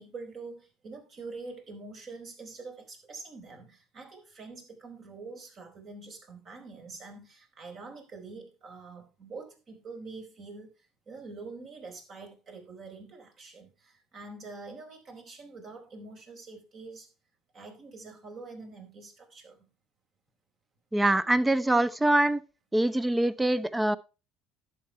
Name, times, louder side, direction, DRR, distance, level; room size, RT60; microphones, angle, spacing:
voice 1, 0.0-10.7 11.1-17.1 17.5-19.6, right 3 dB, 45° right, 4.4 m, -45 dB
voice 2, 20.9-22.4 22.7-24.0, right 1 dB, 10° right, 0.7 m, -24 dB
11.0 x 7.5 x 4.6 m
supercardioid pair, 90°, 0 cm